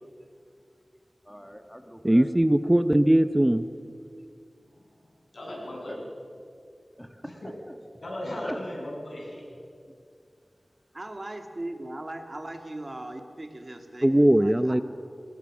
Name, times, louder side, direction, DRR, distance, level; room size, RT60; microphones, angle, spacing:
voice 1, 1.2-2.3 5.5-5.6 5.9-6.0 7.0-7.8 8.4-8.6 9.9-10.0, equal, ahead, 5 dB, 1.6 m, -42 dB
voice 2, 2.0-3.7 14.0-14.8, right 1 dB, 15° right, 11 dB, 0.7 m, -20 dB
voice 3, 5.3-6.0 7.4-7.6 8.0-9.4, left 1 dB, 75° left, -3 dB, 7.8 m, -36 dB
voice 4, 10.9-14.8, right 1 dB, 40° right, 5 dB, 2.3 m, -39 dB
28.0 x 20.5 x 6.3 m, 2.4 s
wide cardioid pair, 75°, 0 cm